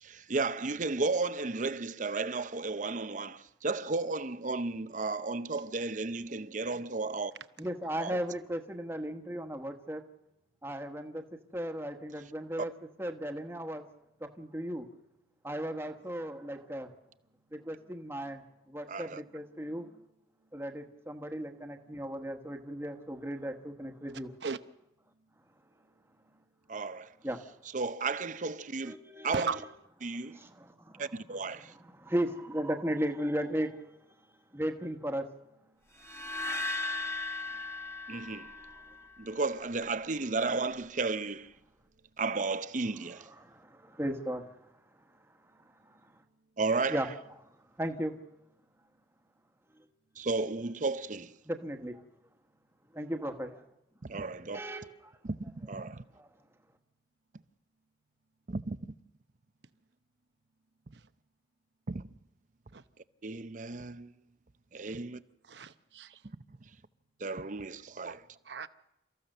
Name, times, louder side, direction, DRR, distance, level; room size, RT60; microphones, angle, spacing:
voice 1, 0.0-7.3 8.0-8.2 18.9-19.2 26.7-27.1 27.7-28.9 29.2-29.6 30.0-30.4 31.0-31.7 38.1-38.5 39.2-41.5 42.2-43.3 46.6-47.0 50.2-51.3 54.0-54.6 55.2-56.0 58.5-58.8 61.9-62.0 63.2-64.1 64.7-65.2 66.5-66.6 67.2-68.2, right 3 dB, 45° right, 0.7 m, -33 dB
voice 2, 7.6-10.0 10.6-11.2 11.5-12.7 13.0-13.8 14.2-14.9 15.4-16.9 17.5-19.9 20.5-24.3 27.2-27.4 28.8-29.5 30.3-31.1 31.8-33.9 34.5-35.3 38.1-39.0 43.4-44.5 45.9-46.0 46.9-47.1 47.8-48.2 51.4-52.0 52.9-53.6 54.5-55.1 56.2-56.3, equal, 15° right, 1.3 m, -36 dB
sound 1, 36.0-39.2, left 3 dB, 15° left, 1.6 m, -37 dB
voice 3, 65.5-66.2 68.0-68.2 68.5-68.7, right 5 dB, 75° right, 0.9 m, -37 dB
29.0 x 14.5 x 6.7 m
head